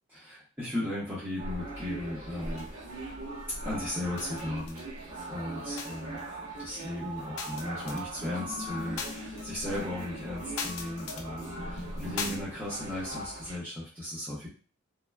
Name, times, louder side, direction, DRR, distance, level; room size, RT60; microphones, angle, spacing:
voice 1, 0.1-2.7 3.6-4.9 5.3-6.2 6.6-14.5, left 1 dB, 10° right, -11 dB, 0.8 m, -36 dB
sound 1, 1.4-13.6, right 2 dB, 90° right, 1.0 m, -40 dB
sound 2, 2.6-3.3 3.6-4.8 5.1-12.4, left 4 dB, 75° left, 0.5 m, -41 dB
3.1 x 2.1 x 2.3 m, 0.39 s
head